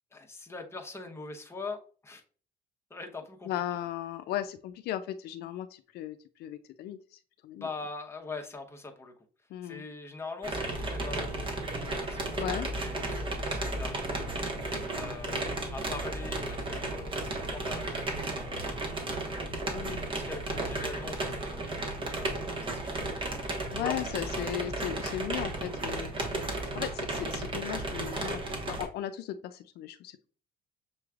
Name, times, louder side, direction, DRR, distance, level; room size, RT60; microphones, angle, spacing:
voice 1, 0.1-1.8 2.0-2.2 2.9-3.5 7.6-9.1 9.6-11.6 11.9-12.4 12.7-18.8 19.6-24.5, left 3 dB, 15° left, 2 dB, 1.0 m, -43 dB
voice 2, 3.4-7.7 9.5-9.8 12.4-12.7 19.7-20.0 23.7-28.4 28.7-30.2, left 11 dB, 70° left, 10 dB, 0.4 m, -36 dB
sound 1, 10.4-28.8, right 2 dB, 30° right, 1.3 m, -34 dB
6.8 x 3.1 x 2.4 m, 0.41 s
cardioid pair, 110°, 17 cm